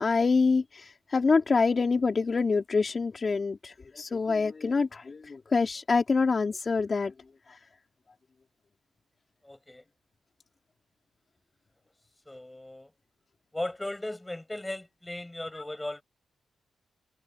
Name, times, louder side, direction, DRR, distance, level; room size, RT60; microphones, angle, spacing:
voice 1, 0.0-7.1 7.5-7.6 15.5-15.6, left 4 dB, 35° left, 3.6 m, -26 dB
voice 2, 9.4-9.8 12.3-12.9 13.5-16.0, left 1 dB, 10° left, 6.1 m, -37 dB
cardioid pair, 125°, 0 cm